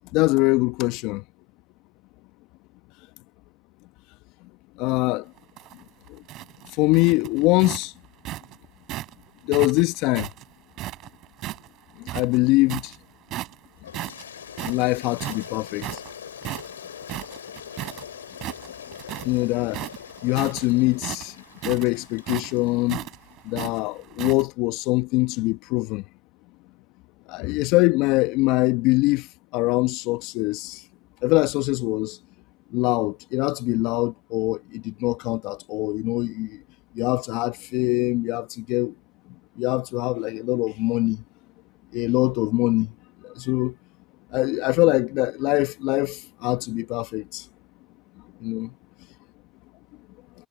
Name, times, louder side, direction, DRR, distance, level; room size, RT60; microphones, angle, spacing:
voice 1, 0.1-1.2 4.8-5.3 6.1-6.2 6.7-7.9 9.5-10.3 12.0-12.9 14.6-16.0 19.2-19.8 20.2-21.3 21.6-23.1 23.4-26.0 27.3-29.3 29.5-30.8 31.2-32.2 32.7-36.6 36.9-38.9 39.6-41.2 41.9-42.9 43.2-43.8 44.3-47.5 48.4-48.7, left 22 dB, 70° left, 1.3 m, -23 dB
sound 1, 5.4-9.1 9.5-11.7 12.0-13.0 13.3-13.7 13.9-18.0 18.3-19.4 19.7-24.4, right 15 dB, 60° right, 4.1 m, -35 dB
Toilet flush, 13.8-23.2, left 8 dB, 90° left, 2.9 m, -42 dB
hypercardioid pair, 60°, 0 cm